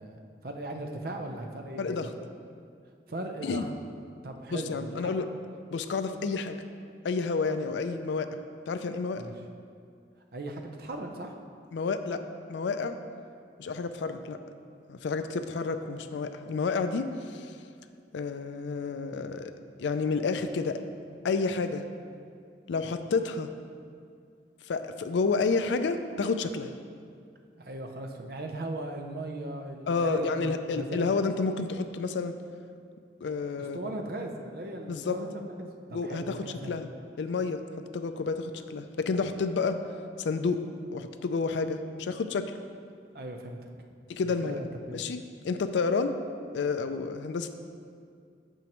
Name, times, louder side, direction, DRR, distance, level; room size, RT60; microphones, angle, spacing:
voice 1, 0.0-2.1 3.1-3.7 4.2-5.1 9.2-9.3 10.3-11.4 27.6-31.0 33.6-36.8 43.1-43.6 44.2-45.0, right 1 dB, 55° right, 3 dB, 0.6 m, -38 dB
voice 2, 1.8-2.1 3.4-3.6 4.5-5.3 5.7-6.6 7.0-8.4 8.7-9.2 11.7-12.2 12.5-13.0 13.6-14.4 14.9-17.5 18.1-19.5 19.8-20.8 21.2-21.8 22.7-23.5 24.7-26.7 29.9-32.3 33.2-33.8 34.9-35.2 35.9-36.9 37.2-37.6 37.9-39.8 40.2-40.6 40.9-42.5 44.1-44.6 44.9-46.1 46.5-47.5, left 4 dB, 85° left, 9 dB, 0.4 m, -30 dB
8.9 x 6.1 x 3.0 m, 2.3 s
head